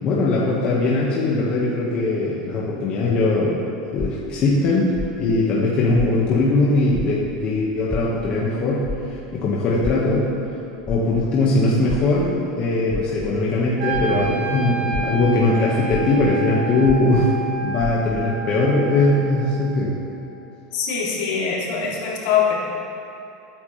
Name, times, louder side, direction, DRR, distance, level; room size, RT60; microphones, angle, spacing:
voice 1, 0.0-3.6 3.9-4.9 5.2-8.8 9.3-10.3 10.9-17.3 17.6-19.9, left 2 dB, 35° left, -6 dB, 1.9 m, -20 dB
sound 1, 4.0-6.6 6.9-14.5 14.8-18.4, left 3 dB, 5° left, 0.4 m, -34 dB
Wind instrument woodwind instrument, 13.8-19.9, right 5 dB, 70° right, 3.5 m, -30 dB
voice 2, 20.7-22.5, left 7 dB, 65° left, -5 dB, 3.6 m, -22 dB
22.0 x 9.8 x 3.5 m, 2.8 s
supercardioid pair, 155°, 3 cm